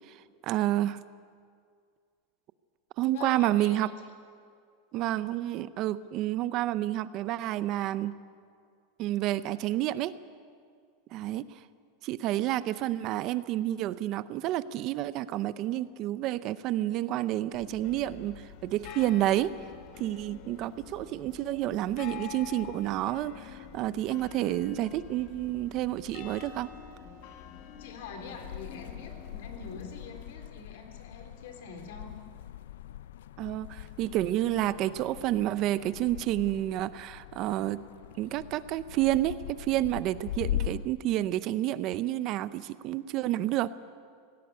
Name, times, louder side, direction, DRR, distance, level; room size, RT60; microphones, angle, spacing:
voice 1, 0.1-1.0 3.0-3.9 4.9-8.1 9.0-10.2 11.1-11.5 12.0-19.5 20.0-26.7 33.4-37.8 38.2-43.7, right 14 dB, 35° right, 16 dB, 0.5 m, -29 dB
voice 2, 3.1-3.9 27.8-32.1, left 5 dB, 70° left, 4 dB, 3.5 m, -45 dB
sound 1, 17.5-30.1, left 9 dB, 45° left, 1.7 m, -47 dB
sound 2, 28.2-40.9, left 12 dB, 90° left, 0.5 m, -41 dB
18.0 x 17.0 x 9.6 m, 2.2 s
supercardioid pair, 170°, 0 cm